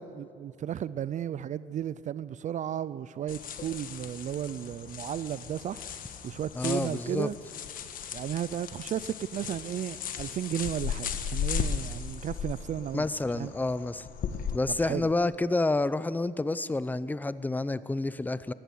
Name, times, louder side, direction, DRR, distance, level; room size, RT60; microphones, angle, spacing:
voice 1, 0.0-5.8 6.2-7.3 8.1-13.1 13.3-13.5 14.7-15.1, right 10 dB, 45° right, 0.5 m, -34 dB
sound 1, 3.3-14.6, left 7 dB, 55° left, 1.4 m, -37 dB
voice 2, 6.5-7.3 12.9-14.1 14.5-18.5, left 2 dB, 10° left, 0.6 m, -29 dB
20.0 x 15.0 x 9.3 m
cardioid pair, 110°, 17 cm